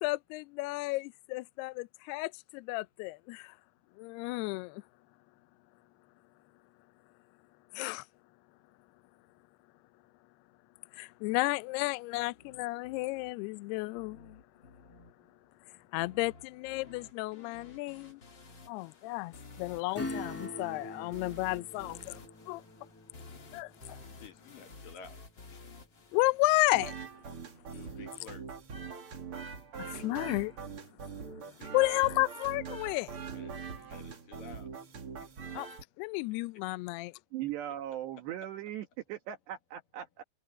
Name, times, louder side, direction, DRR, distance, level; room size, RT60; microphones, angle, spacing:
voice 1, 0.0-3.6 4.0-4.8 7.7-8.1 10.9-14.4 15.9-18.2 18.7-22.6 23.5-24.0 26.1-26.9 29.8-30.6 31.7-33.2 35.5-35.7 36.0-37.1, left 23 dB, 80° left, 2.5 m, -32 dB
sound 1, 12.2-27.2, left 3 dB, 30° left, 2.8 m, -53 dB
Acoustic guitar / Strum, 19.9-26.1 26.5-26.6, left 2 dB, 5° left, 1.4 m, -44 dB
voice 2, 24.2-25.2 25.5-25.7 27.7-28.4 31.4-32.0 33.3-34.7 35.2-35.3, left 7 dB, 60° left, 3.2 m, -52 dB
sound 2, 26.7-35.8, right 5 dB, 40° right, 2.2 m, -43 dB
voice 3, 37.3-40.2, right 12 dB, 80° right, 3.9 m, -39 dB
omnidirectional pair, 4.9 m